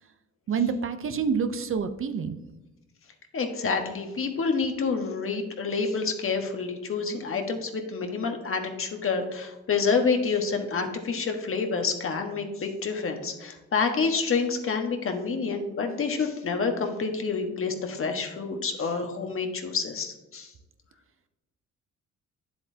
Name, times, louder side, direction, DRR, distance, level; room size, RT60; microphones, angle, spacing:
voice 1, 0.5-2.4, right 6 dB, 45° right, 10 dB, 0.7 m, -27 dB
voice 2, 3.3-20.5, left 4 dB, 45° left, 4 dB, 1.4 m, -28 dB
9.9 x 7.8 x 2.8 m, 1.0 s
cardioid pair, 90°, 30 cm